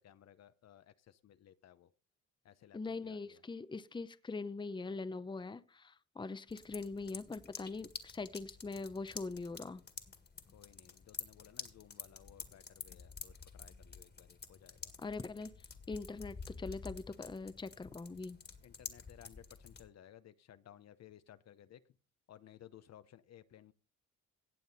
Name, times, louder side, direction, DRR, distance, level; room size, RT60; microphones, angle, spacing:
voice 1, 0.0-1.9 2.4-3.4 10.5-14.9 18.6-21.8 22.3-23.7, left 11 dB, 60° left, 0.8 m, -59 dB
voice 2, 2.7-9.8 15.0-15.5 15.9-18.4, left 3 dB, 15° left, 0.7 m, -42 dB
sound 1, 6.5-19.9, left 5 dB, 35° left, 1.9 m, -50 dB
17.0 x 7.1 x 4.1 m
cardioid pair, 90°, 30 cm